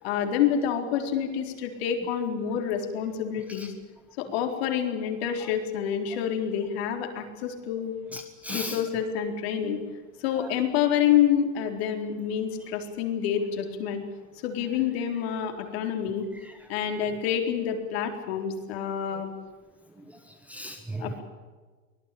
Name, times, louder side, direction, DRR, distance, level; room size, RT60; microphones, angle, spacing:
voice 1, 0.0-3.7 4.2-7.9 8.5-9.8 10.2-14.0 14.4-16.2 16.7-19.3 21.0-21.2, left 9 dB, 50° left, 4 dB, 4.2 m, -27 dB
voice 2, 8.1-8.8 10.4-10.5 16.3-16.5 19.1-19.2 20.1-21.2, equal, 5° right, 6 dB, 1.2 m, -38 dB
24.0 x 18.0 x 8.6 m, 1.4 s
supercardioid pair, 150°, 39 cm